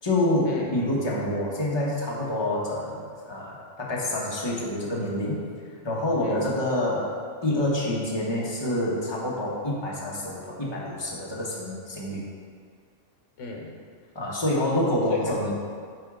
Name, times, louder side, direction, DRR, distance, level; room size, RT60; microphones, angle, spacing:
voice 1, 0.0-5.4 5.8-7.1 7.4-12.3 14.1-15.5, left 1 dB, 20° left, -5 dB, 1.1 m, -27 dB
voice 2, 13.4-13.8 15.1-15.5, left 3 dB, 75° left, 1 dB, 1.3 m, -35 dB
8.0 x 4.4 x 3.7 m, 2.1 s
omnidirectional pair, 1.3 m